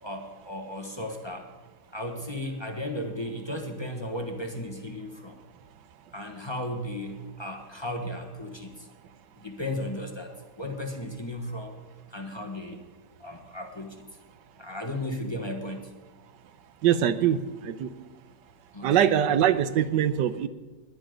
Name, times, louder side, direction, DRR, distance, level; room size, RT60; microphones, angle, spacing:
voice 1, 0.0-1.5 1.9-5.4 6.1-8.9 9.4-11.8 12.1-12.8 13.2-14.0 14.6-15.9 18.7-19.0, left 1 dB, 15° left, 3 dB, 1.2 m, -35 dB
voice 2, 16.8-17.9 18.8-20.5, right 10 dB, 85° right, 13 dB, 1.4 m, -23 dB
20.5 x 9.7 x 5.1 m, 1.3 s
omnidirectional pair, 1.8 m